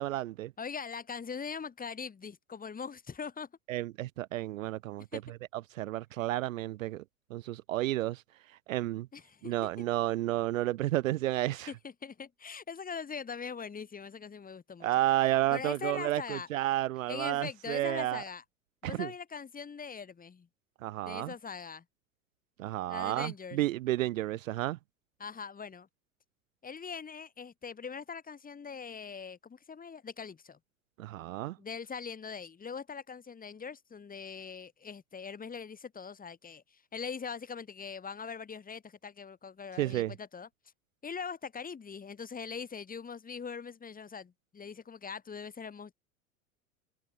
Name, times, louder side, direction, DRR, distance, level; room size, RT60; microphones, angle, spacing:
voice 1, 0.0-0.5 3.7-7.0 7.3-8.2 8.7-9.1 9.5-11.7 14.8-18.2 18.8-19.1 20.8-21.3 22.6-24.8 31.0-31.6 39.8-40.1, right 15 dB, 70° right, 0.5 m, -31 dB
voice 2, 0.6-3.5 5.1-5.2 9.1-9.5 11.7-14.9 15.5-16.5 17.1-18.4 18.8-20.5 21.0-21.8 22.9-23.6 25.2-25.9 26.6-30.6 31.6-40.5 41.0-45.9, left 6 dB, 20° left, 4.7 m, -42 dB
figure-of-eight pair, 80°, 42 cm